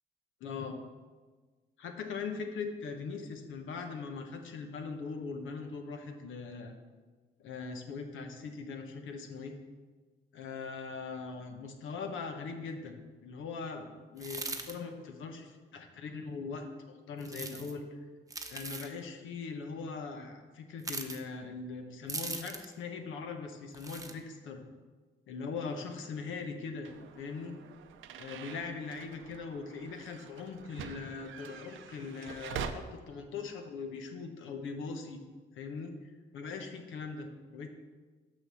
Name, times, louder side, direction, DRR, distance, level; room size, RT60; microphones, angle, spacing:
voice 1, 0.4-0.8 1.8-6.8 7.4-9.6 10.3-18.0 18.5-24.6 25.3-26.9 27.2-27.5 28.1-35.2 35.5-37.7, left 4 dB, 80° left, 5 dB, 1.1 m, -41 dB
sound 1, 14.2-14.7 17.2-17.7 18.3-18.9 20.8-21.2 22.1-22.7 23.7-24.1, right 3 dB, 15° right, 0.9 m, -40 dB
sound 2, 26.8-32.7, right 8 dB, 80° right, 0.6 m, -45 dB
6.4 x 6.1 x 6.3 m, 1.4 s
cardioid pair, 90°, 20 cm